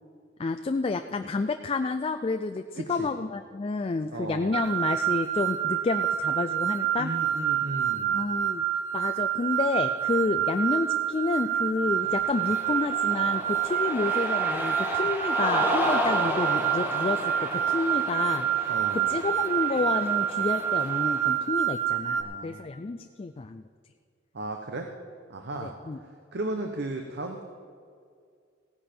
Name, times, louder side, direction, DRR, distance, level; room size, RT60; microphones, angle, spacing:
voice 1, 0.4-7.1 8.1-18.7 19.1-23.6 25.6-26.0, left 3 dB, 30° left, 7 dB, 0.4 m, -30 dB
voice 2, 2.8-3.1 4.1-4.6 7.0-8.2 18.7-19.1 22.1-22.7 24.3-24.9 25.3-27.4, right 2 dB, 60° right, 4 dB, 0.9 m, -36 dB
sound 1, 4.5-22.2, right 10 dB, 85° right, 0.9 m, -27 dB
Cheering, 12.1-21.3, equal, 10° right, 1.5 m, -32 dB
16.5 x 10.0 x 4.4 m, 2.2 s
head